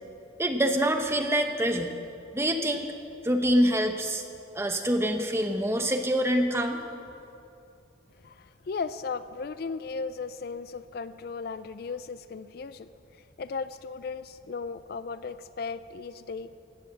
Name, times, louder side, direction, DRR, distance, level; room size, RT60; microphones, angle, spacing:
voice 1, 0.4-1.9 2.3-2.9 3.2-4.2 4.5-6.8, equal, 15° right, 5 dB, 0.9 m, -25 dB
voice 2, 8.2-12.9 13.4-16.5, left 4 dB, 55° left, 14 dB, 0.4 m, -36 dB
16.0 x 9.2 x 7.5 m, 2.7 s
head